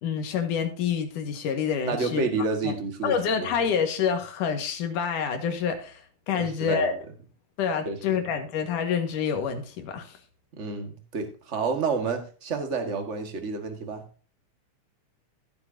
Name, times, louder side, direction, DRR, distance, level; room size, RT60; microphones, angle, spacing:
voice 1, 0.0-2.3 2.6-2.7 3.0-6.9 7.6-10.2, left 7 dB, 80° left, 6 dB, 3.1 m, -27 dB
voice 2, 1.9-3.5 6.3-7.0 7.8-8.0 10.6-14.0, right 4 dB, 35° right, 5 dB, 1.3 m, -29 dB
15.0 x 7.6 x 2.7 m, 0.38 s
omnidirectional pair, 3.6 m